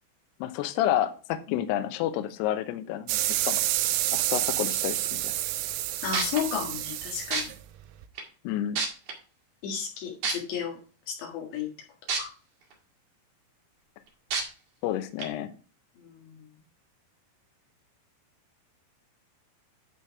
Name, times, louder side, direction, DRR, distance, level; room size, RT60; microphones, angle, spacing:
voice 1, 0.4-3.6 4.1-5.3 8.4-8.8 14.8-15.5, left 12 dB, 85° left, 9 dB, 2.3 m, -30 dB
sound 1, 3.1-8.1, right 15 dB, 85° right, 3.0 m, -29 dB
sound 2, 5.8-5.9 6.1-6.4 7.3-7.4 8.2-8.3 8.7-9.1 10.2-10.3 12.1-12.2 12.7-12.8 14.3-14.4 15.2-15.3, right 4 dB, 50° right, 2.4 m, -27 dB
voice 2, 6.0-7.5 9.6-10.8 11.1-11.7 12.2-12.3 16.0-16.5, left 7 dB, 65° left, 0 dB, 3.7 m, -33 dB
11.5 x 4.4 x 4.8 m, 0.37 s
omnidirectional pair, 5.9 m